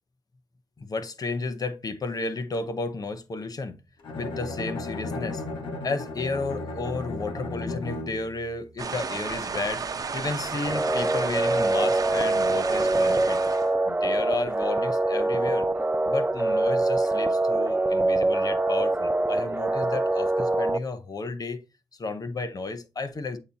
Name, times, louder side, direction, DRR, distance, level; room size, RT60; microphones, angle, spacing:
voice 1, 0.8-3.7 4.1-5.4 5.8-13.4 13.8-15.7 16.1-21.6 21.9-23.4, left 3 dB, 45° left, 0.9 m, -32 dB
Bowed string instrument, 4.0-8.4, left 2 dB, 70° left, 1.5 m, -34 dB
sound 1, 8.8-13.7, right 5 dB, 45° right, 0.9 m, -32 dB
sound 2, 10.7-20.8, right 2 dB, 20° right, 0.6 m, -24 dB
8.2 x 3.0 x 4.0 m
supercardioid pair, 45°, 9 cm